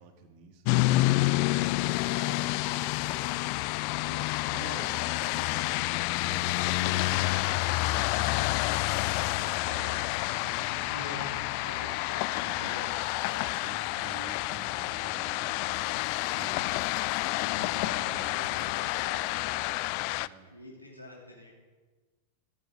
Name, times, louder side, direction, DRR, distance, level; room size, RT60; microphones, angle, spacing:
voice 1, 0.0-1.6 4.0-5.8 6.2-11.1 11.7-11.8 12.4-12.7 13.6-15.9 16.3-16.8 17.3-18.5 20.2-20.5, right 5 dB, 45° right, 5 dB, 2.2 m, -49 dB
sound 1, 0.7-20.3, left 20 dB, 45° left, 0.4 m, -29 dB
sound 2, 0.7-20.2, left 2 dB, 20° left, 2.9 m, -59 dB
voice 2, 2.0-3.4 10.9-13.5 17.7-19.3 20.4-21.5, left 2 dB, 90° left, -2 dB, 3.3 m, -45 dB
15.5 x 14.5 x 5.1 m, 1.3 s
figure-of-eight pair, 90°, 0 cm